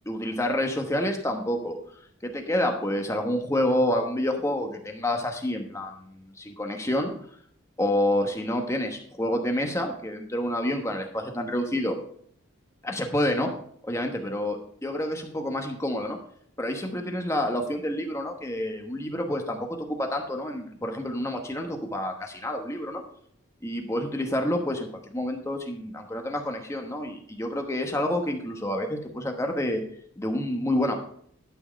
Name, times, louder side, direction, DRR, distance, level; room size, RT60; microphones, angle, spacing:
voice 1, 0.1-1.8 2.2-7.1 7.8-12.0 12.8-13.5 13.8-14.6 14.8-16.2 16.6-23.0 23.6-29.8 30.2-30.9, left 1 dB, 15° left, 3 dB, 1.0 m, -28 dB
12.0 x 4.6 x 6.4 m, 0.63 s
head